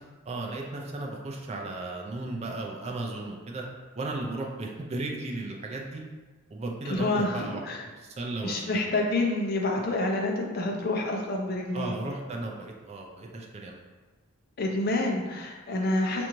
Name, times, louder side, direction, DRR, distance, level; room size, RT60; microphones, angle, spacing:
voice 1, 0.3-3.6 4.0-6.0 6.5-7.6 8.0-8.8 11.7-13.8, right 2 dB, 30° right, 0 dB, 0.4 m, -35 dB
voice 2, 6.9-7.8 8.4-11.9 14.6-16.3, left 2 dB, 45° left, 0 dB, 0.6 m, -28 dB
4.6 x 2.6 x 3.0 m, 1.3 s
head